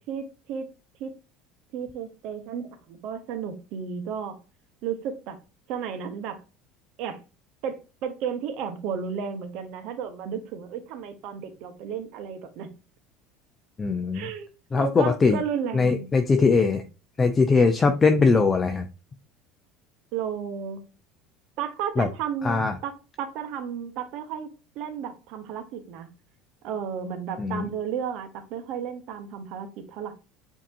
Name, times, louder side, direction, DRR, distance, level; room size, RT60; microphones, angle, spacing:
voice 1, 0.1-0.7 1.0-1.1 1.7-4.4 4.8-5.4 5.7-6.4 7.0-7.2 7.6-12.7 14.1-14.5 14.7-16.1 20.1-20.8 21.6-22.9 23.2-24.5 24.7-26.1 26.6-30.1, right 7 dB, 65° right, 0.9 m, -33 dB
voice 2, 13.8-14.3 14.7-15.4 15.7-16.8 17.2-18.9 22.0-22.1 22.4-22.7 27.4-27.7, left 4 dB, 25° left, 0.5 m, -21 dB
5.1 x 2.8 x 2.6 m
supercardioid pair, 95°, 0 cm